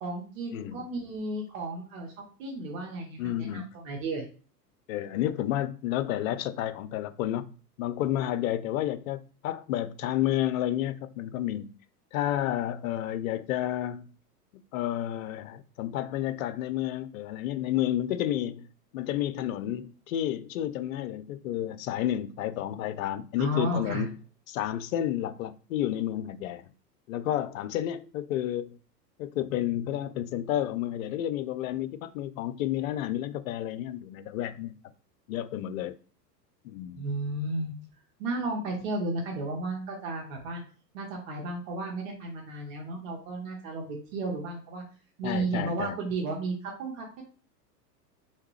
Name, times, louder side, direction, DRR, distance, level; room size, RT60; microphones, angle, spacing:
voice 1, 0.0-2.1 2.4-4.2 23.4-24.1 36.9-37.7 38.2-40.6 40.9-44.8 45.2-47.2, right 2 dB, 50° right, 1.2 m, -33 dB
voice 2, 0.5-0.8 3.2-3.7 4.9-7.5 7.8-11.7 12.1-14.1 14.7-18.7 18.9-24.2 24.5-26.6 27.1-28.8 29.2-34.7 35.3-35.9 36.6-37.0 45.2-46.0, left 12 dB, 60° left, 0.5 m, -31 dB
3.5 x 2.8 x 3.2 m
hypercardioid pair, 100°, 49 cm